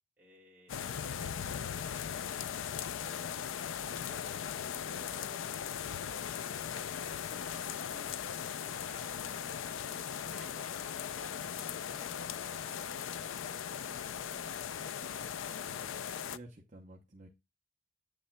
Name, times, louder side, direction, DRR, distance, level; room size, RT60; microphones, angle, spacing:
voice 1, 0.2-0.8 2.8-3.5 3.9-6.0 6.4-8.2 8.6-14.5, equal, 10° right, -4 dB, 2.6 m, -61 dB
sound 1, 0.7-16.4, left 8 dB, 85° left, 0.4 m, -39 dB
sound 2, 7.8-15.0, left 2 dB, 65° left, 4.0 m, -59 dB
voice 2, 15.4-17.3, right 1 dB, 40° right, 1 dB, 0.8 m, -53 dB
8.7 x 6.9 x 2.2 m, 0.25 s
head